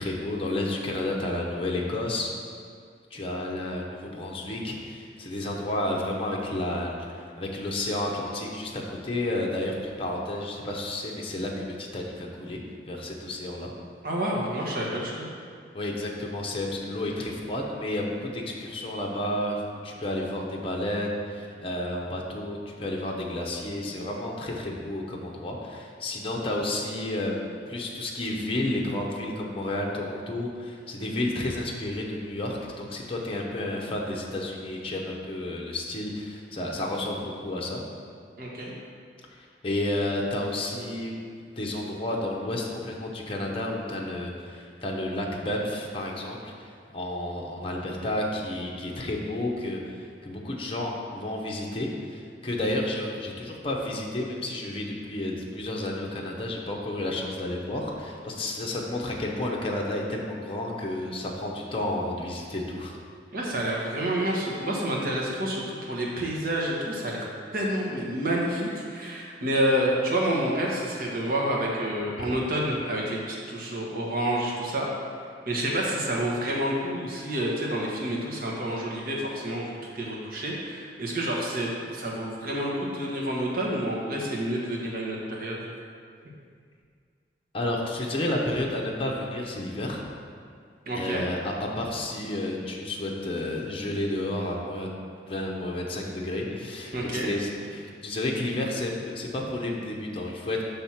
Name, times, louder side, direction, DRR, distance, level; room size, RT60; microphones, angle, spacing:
voice 1, 0.0-2.3 3.1-12.6 12.9-13.7 15.7-37.8 39.4-41.2 41.6-63.0 87.5-90.0 90.9-94.9 95.3-100.6, left 1 dB, 30° left, -1 dB, 0.8 m, -31 dB
voice 2, 14.0-15.3 38.4-38.7 63.3-67.2 67.5-74.9 75.5-85.6 90.9-91.2 96.9-97.3, right 1 dB, 55° right, -3 dB, 1.2 m, -28 dB
6.0 x 3.5 x 5.7 m, 2.1 s
head